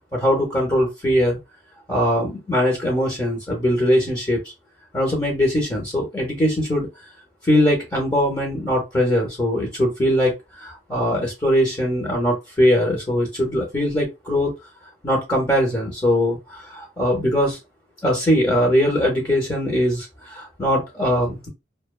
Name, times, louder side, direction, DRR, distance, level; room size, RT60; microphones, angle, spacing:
voice 1, 0.1-1.4 1.9-4.4 4.9-6.9 7.4-14.5 15.0-17.6 18.0-21.5, equal, 20° left, 0 dB, 0.7 m, -21 dB
2.5 x 2.2 x 2.2 m, 0.23 s
head